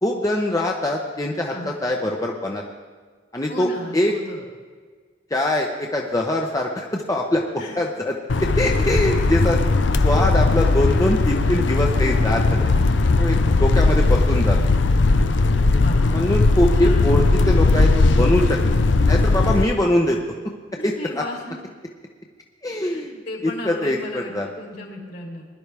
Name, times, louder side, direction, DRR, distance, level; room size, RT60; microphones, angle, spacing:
voice 1, 0.0-2.6 3.3-4.1 5.3-7.4 7.8-8.1 8.4-9.6 10.0-12.7 13.2-14.6 15.5-15.8 16.1-18.6 19.1-20.2 20.8-20.9 22.6-23.2 23.4-24.5, left 1 dB, 20° left, 0 dB, 0.8 m, -23 dB
voice 2, 3.5-4.4 7.6-7.8 13.4-13.7 15.7-16.1 16.8-17.2 20.8-21.7 22.8-25.5, left 1 dB, 60° left, -1 dB, 3.1 m, -35 dB
sound 1, 8.3-19.6, left 3 dB, 80° left, 0.6 m, -18 dB
20.5 x 11.0 x 3.4 m, 1.5 s
head